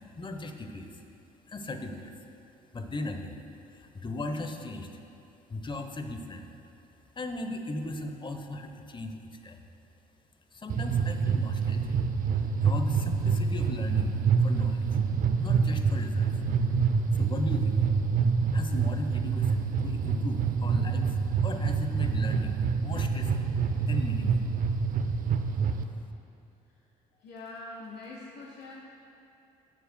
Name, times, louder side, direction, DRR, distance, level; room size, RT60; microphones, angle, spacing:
voice 1, 0.2-0.9 1.5-2.1 2.7-3.4 3.7-4.9 5.5-6.5 7.2-9.6 10.5-12.0 12.6-14.1 14.4-14.9 15.4-16.3 17.1-17.8 18.5-21.2 21.4-23.5 23.9-24.5, left 1 dB, 25° left, 6 dB, 0.9 m, -37 dB
sound 1, 10.7-25.8, right 5 dB, 45° right, 0.6 m, -27 dB
voice 2, 27.2-28.7, left 2 dB, 65° left, -2 dB, 0.9 m, -43 dB
16.0 x 6.8 x 2.2 m, 2.9 s
hypercardioid pair, 55°, 19 cm